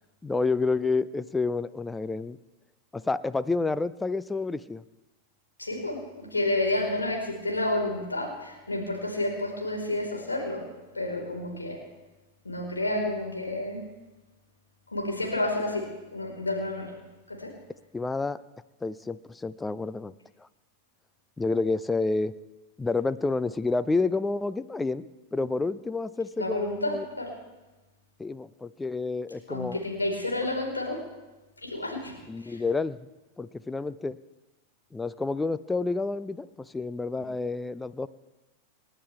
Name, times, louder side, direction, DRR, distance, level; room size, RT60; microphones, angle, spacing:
voice 1, 0.2-2.4 2.9-4.8 17.9-18.4 18.8-20.1 20.4-20.5 21.4-22.3 22.8-27.0 28.2-29.8 32.3-33.1 33.4-34.2 34.9-38.1, left 3 dB, 10° left, 16 dB, 0.6 m, -29 dB
voice 2, 5.6-10.6 10.9-11.8 12.4-13.8 14.9-16.9 17.3-17.5 26.4-27.3 29.5-31.0 31.6-32.1 32.4-32.6 37.1-37.2, left 2 dB, 80° left, -1 dB, 4.7 m, -30 dB
29.0 x 11.0 x 3.5 m, 1.1 s
figure-of-eight pair, 90°, 0 cm